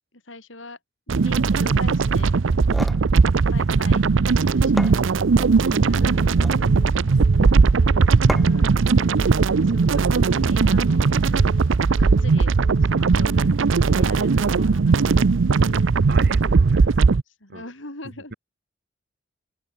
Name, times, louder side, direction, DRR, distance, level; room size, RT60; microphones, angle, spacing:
voice 1, 0.1-0.8 1.2-2.3 3.5-4.0 4.4-4.9 5.3-6.4 7.4-7.8 8.2-11.6 12.0-15.3 15.7-16.0 17.3-18.4, left 2 dB, 85° left, 7.8 m, -42 dB
sound 1, 1.1-17.2, right 4 dB, 90° right, 0.6 m, -18 dB
sound 2, 2.5-3.1 4.3-4.4 4.8-5.6 6.2-6.7 8.3-8.7, equal, ahead, 2.6 m, -32 dB
Telephone, 4.8-5.1 5.4-5.7 6.0-6.3 6.6-6.9 7.2-7.5 7.8-8.1 8.4-8.7 9.0-9.3 9.6-9.9 10.2-10.5 10.8-11.1 11.4-11.7 12.0-12.3 12.6-12.9 13.2-13.5 13.8-14.1 14.4-14.7 15.0-15.3 15.6-15.9, left 1 dB, 50° left, 7.1 m, -43 dB
voice 2, 7.0-7.6 9.0-9.2 16.1-17.1 17.5-17.6, right 3 dB, 60° right, 7.0 m, -38 dB
head